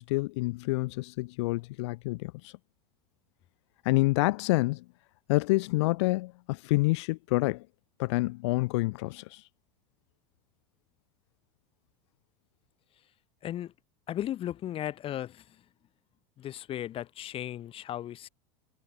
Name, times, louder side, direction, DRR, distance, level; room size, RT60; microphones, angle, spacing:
voice 1, 0.0-2.5 3.8-4.8 5.3-7.7 8.0-9.4, left 22 dB, 70° left, 0.5 m, -28 dB
voice 2, 13.4-13.7 14.1-15.4 16.4-18.3, left 12 dB, 40° left, 1.2 m, -36 dB
hypercardioid pair, 105°, 15 cm